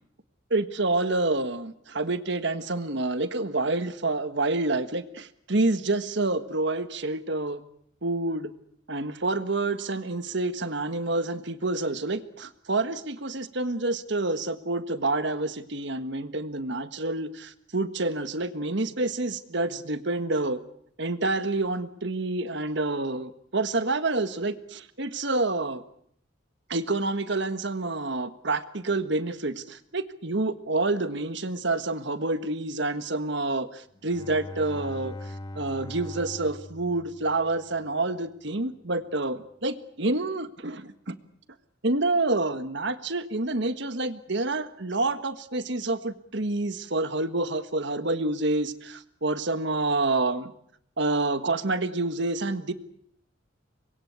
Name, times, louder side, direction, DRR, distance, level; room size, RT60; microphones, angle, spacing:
voice 1, 0.5-7.6 8.0-8.5 8.9-20.6 21.0-25.8 26.7-41.1 41.8-50.5 51.0-52.7, right 2 dB, 60° right, 11 dB, 1.6 m, -28 dB
Bowed string instrument, 34.0-37.8, left 1 dB, 20° left, 1.5 m, -41 dB
25.0 x 22.0 x 8.3 m, 0.69 s
head